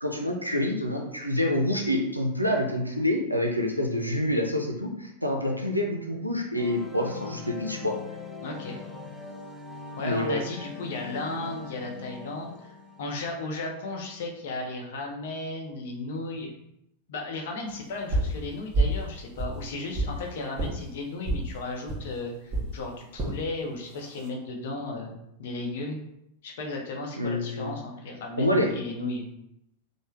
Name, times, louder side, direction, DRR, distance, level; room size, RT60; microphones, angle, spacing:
voice 1, 0.0-8.0 10.0-10.4 27.2-27.7 28.4-28.7, left 1 dB, 90° right, 2 dB, 0.4 m, -27 dB
sound 1, 6.5-13.4, left 4 dB, 5° left, 0.4 m, -41 dB
voice 2, 8.4-8.8 10.0-16.5 17.1-26.0 26.4-29.2, left 2 dB, 55° left, 1 dB, 0.7 m, -35 dB
sound 2, 18.1-18.4 18.7-19.0 19.4-20.2 20.6-20.7 21.2-21.5 21.9-22.0 22.5-22.7 23.2-23.4 23.9-24.3, right 2 dB, 25° right, 1.0 m, -27 dB
3.3 x 2.1 x 3.1 m, 0.80 s
figure-of-eight pair, 90°, 0 cm